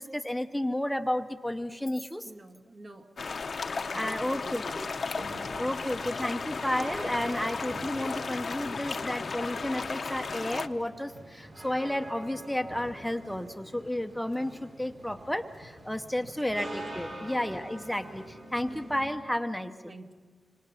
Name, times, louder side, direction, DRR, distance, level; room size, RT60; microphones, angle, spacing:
voice 1, 0.0-2.3 3.9-4.9 5.4-20.0, left 1 dB, 5° left, 7 dB, 0.7 m, -32 dB
voice 2, 2.3-3.1 3.8-4.8 16.1-16.6 17.1-17.4 19.8-20.1, right 1 dB, 50° right, 3 dB, 1.9 m, -48 dB
sound 1, 3.2-10.7, left 4 dB, 55° left, 0.7 m, -35 dB
sound 2, 4.3-19.1, right 1 dB, 70° right, 6.4 m, -45 dB
26.5 x 26.0 x 5.8 m, 1.5 s
wide cardioid pair, 100°, 0 cm